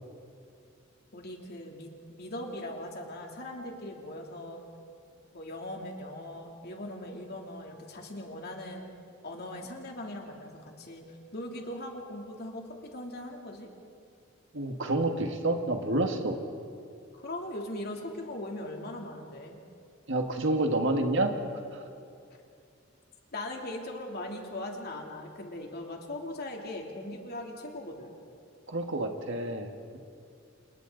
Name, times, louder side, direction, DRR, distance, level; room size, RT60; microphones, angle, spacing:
voice 1, 1.1-4.6 5.3-8.9 9.2-11.0 11.3-13.7 17.1-19.6 23.3-28.2, left 1 dB, 55° left, 1 dB, 3.1 m, -40 dB
voice 2, 14.5-16.4 20.1-21.3 21.7-21.8 28.7-30.0, right 2 dB, 65° right, 4 dB, 1.8 m, -29 dB
29.0 x 28.0 x 4.0 m, 2.4 s
head